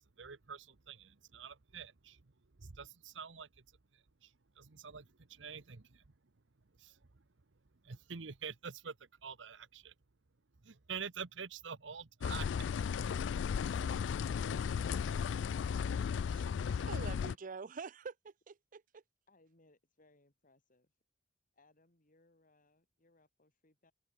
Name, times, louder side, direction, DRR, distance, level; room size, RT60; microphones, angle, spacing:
voice 1, 0.2-2.2 2.6-3.5 3.9-6.0 6.8-7.2 7.8-9.9 10.6-12.5 13.7-14.0, right 6 dB, 80° right, 1.0 m, -47 dB
sound 1, 12.2-17.3, left 7 dB, 75° left, 0.3 m, -35 dB
voice 2, 16.8-19.0, right 5 dB, 45° right, 0.5 m, -46 dB
voice 3, 19.3-21.0 21.5-23.9, left 2 dB, 50° left, 3.9 m, -69 dB
head